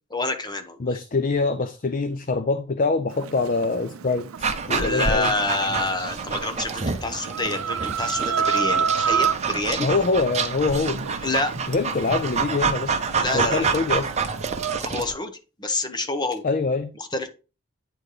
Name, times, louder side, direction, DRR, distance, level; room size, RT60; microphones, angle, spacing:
voice 1, 0.1-0.8 4.7-9.9 11.2-11.5 13.2-13.8 14.8-15.3 15.6-16.4 17.1-17.3, left 2 dB, 20° left, 1.0 m, -27 dB
voice 2, 0.8-4.3 4.7-5.3 9.8-11.1 11.7-12.9 13.3-14.1 16.4-16.9, left 3 dB, 40° left, 0.6 m, -24 dB
Chicken rooster, 3.1-14.8, right 7 dB, 90° right, 0.5 m, -30 dB
Dog, 4.4-15.1, right 5 dB, 35° right, 0.8 m, -28 dB
9.3 x 4.3 x 4.9 m
head